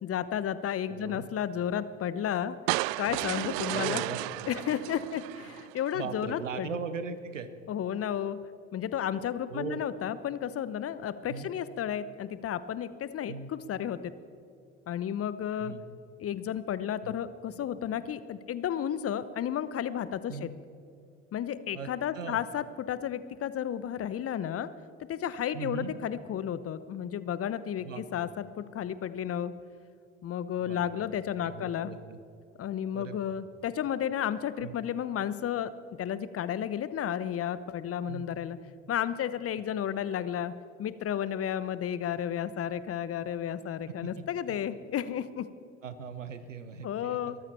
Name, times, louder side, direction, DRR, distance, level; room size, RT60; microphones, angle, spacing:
voice 1, 0.0-2.6 3.0-4.0 4.5-6.8 7.7-8.4 8.7-14.1 14.9-15.7 16.2-20.5 21.3-24.7 25.1-29.5 30.2-31.9 32.6-35.7 36.0-38.6 38.9-40.5 40.8-45.5 46.8-47.5, left 9 dB, 40° left, 15 dB, 0.9 m, -32 dB
voice 2, 0.9-1.3 3.7-4.2 5.9-7.5 9.5-9.8 11.3-11.5 13.3-13.5 15.6-15.8 17.0-17.1 20.3-20.5 21.7-22.4 25.5-26.0 27.8-28.2 30.6-31.0 31.4-32.0 32.9-33.4 34.6-34.8 38.1-38.3 44.0-44.6 45.8-47.4, right 5 dB, 90° right, 12 dB, 0.9 m, -39 dB
sound 1, 2.7-5.9, right 21 dB, 55° right, 0.5 m, -33 dB
22.0 x 14.0 x 4.5 m, 2.4 s
figure-of-eight pair, 60°, 37 cm